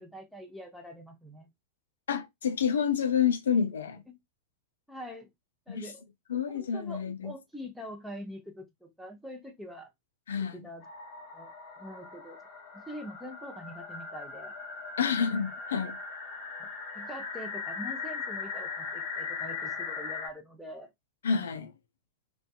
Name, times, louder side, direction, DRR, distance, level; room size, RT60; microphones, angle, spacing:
voice 1, 0.0-1.5 4.1-4.2 4.9-5.3 5.7-6.0 6.5-9.9 10.4-10.8 11.3-12.4 12.7-14.5 16.6-16.7 16.9-20.9, equal, ahead, 0.6 m, -44 dB
voice 2, 2.1-4.0 5.7-5.9 6.3-7.3 10.3-10.6 15.0-16.0 21.2-21.7, left 7 dB, 65° left, 0.3 m, -28 dB
sound 1, 10.8-20.3, left 5 dB, 40° left, 0.9 m, -39 dB
2.5 x 2.2 x 2.2 m
figure-of-eight pair, 90°, 0 cm